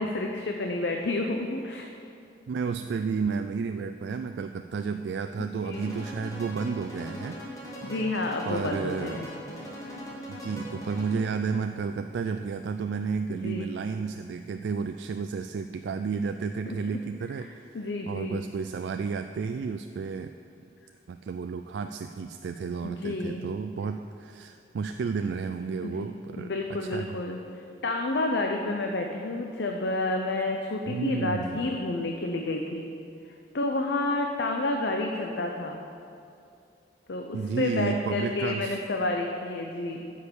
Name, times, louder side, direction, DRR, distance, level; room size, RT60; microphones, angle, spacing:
voice 1, 0.0-1.9 5.6-5.9 7.8-9.3 13.3-13.7 16.7-16.8 17.4-17.5 17.7-18.4 22.8-23.5 25.8-26.1 26.4-32.9 33.5-35.8 37.1-40.1, left 2 dB, 75° left, 2 dB, 0.7 m, -30 dB
voice 2, 2.5-7.4 8.4-9.3 10.3-17.8 18.1-20.3 21.1-26.5 26.9-27.2 30.9-31.7 37.3-38.8, right 5 dB, 75° right, 7 dB, 0.3 m, -32 dB
sound 1, 5.7-11.4, equal, 20° left, 1.7 m, -40 dB
9.8 x 6.5 x 7.0 m, 2.6 s
head